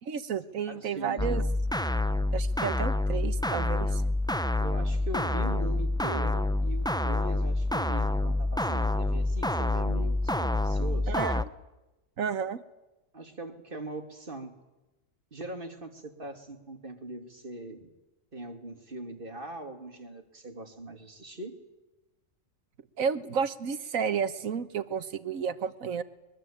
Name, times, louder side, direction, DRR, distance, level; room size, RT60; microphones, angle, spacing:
voice 1, 0.0-1.4 2.3-4.0 11.1-11.5 12.2-12.6 23.0-26.0, right 7 dB, 80° right, 13 dB, 1.6 m, -31 dB
voice 2, 0.7-1.5 4.6-11.1 13.1-14.6 15.3-17.9 18.3-21.6, right 2 dB, 40° right, 5 dB, 2.8 m, -41 dB
sound 1, 1.2-11.4, left 2 dB, 5° left, 0.5 m, -27 dB
24.0 x 22.5 x 8.7 m, 1.0 s
omnidirectional pair, 1.4 m